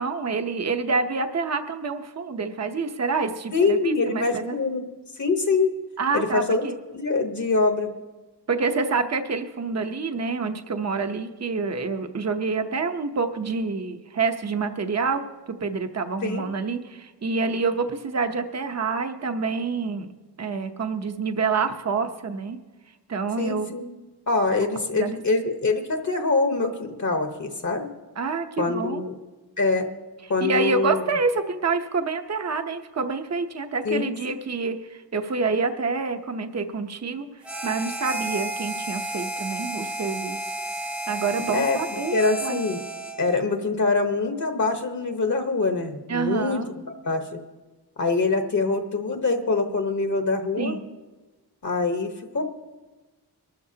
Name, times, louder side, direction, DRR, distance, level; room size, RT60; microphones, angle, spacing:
voice 1, 0.0-4.6 6.0-6.7 8.5-15.2 15.5-20.1 20.4-22.6 23.1-23.7 25.0-25.2 28.2-29.1 30.4-40.5 40.8-42.6 46.1-46.7 50.6-50.9, right 4 dB, 40° right, 7 dB, 0.8 m, -27 dB
voice 2, 3.5-4.9 5.2-5.7 6.1-6.7 6.9-7.9 16.2-16.5 23.4-23.9 24.3-27.9 28.6-29.2 29.6-29.9 30.3-31.0 33.8-34.1 41.5-41.8 42.1-42.8 43.2-47.4 48.0-50.7 51.6-52.5, left 3 dB, 45° left, 5 dB, 1.1 m, -24 dB
Harmonica, 37.4-43.4, right 1 dB, 5° right, 0.8 m, -32 dB
23.5 x 12.5 x 2.8 m, 1.2 s
wide cardioid pair, 130°, 40 cm